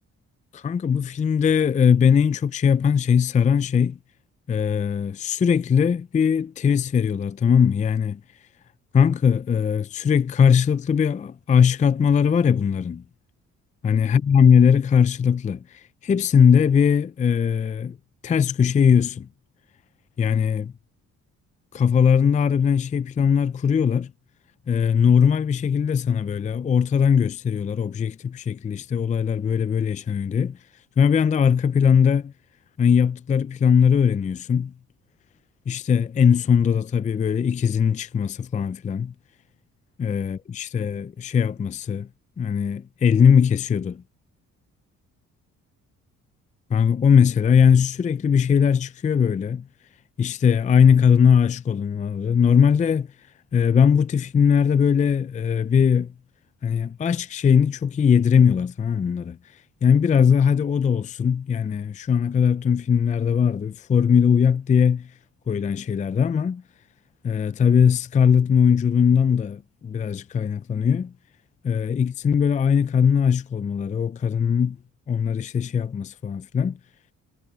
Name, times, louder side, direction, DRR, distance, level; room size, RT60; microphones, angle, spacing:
voice 1, 0.5-4.0 4.5-8.2 8.9-13.0 13.8-18.0 18.2-19.3 20.2-20.7 21.7-24.1 24.7-30.6 31.0-32.3 32.8-34.7 35.7-39.1 40.0-42.1 42.4-44.0 46.7-49.7 50.2-53.1 53.5-56.1 56.6-65.1 65.5-66.6 67.2-71.1 71.6-74.8 75.1-76.8, left 7 dB, 25° left, 0.4 m, -20 dB
cardioid pair, 90°, 30 cm